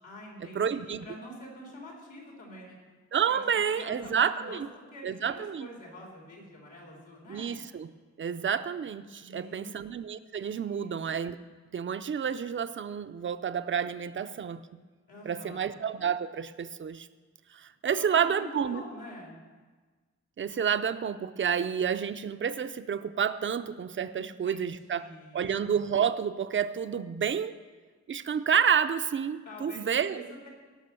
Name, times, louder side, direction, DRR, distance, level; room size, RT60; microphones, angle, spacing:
voice 1, 0.0-2.8 3.3-4.6 4.9-7.6 9.2-9.8 10.7-11.0 15.1-15.7 17.8-19.4 24.1-25.4 29.5-30.5, left 1 dB, 90° left, -2 dB, 3.9 m, -46 dB
voice 2, 0.5-1.0 3.1-4.7 5.0-5.7 7.3-7.9 8.2-11.4 11.7-14.6 15.2-17.1 17.5-18.8 20.4-27.6 28.1-30.3, right 7 dB, 40° right, 12 dB, 0.5 m, -29 dB
17.0 x 6.0 x 6.8 m, 1.4 s
wide cardioid pair, 145°, 29 cm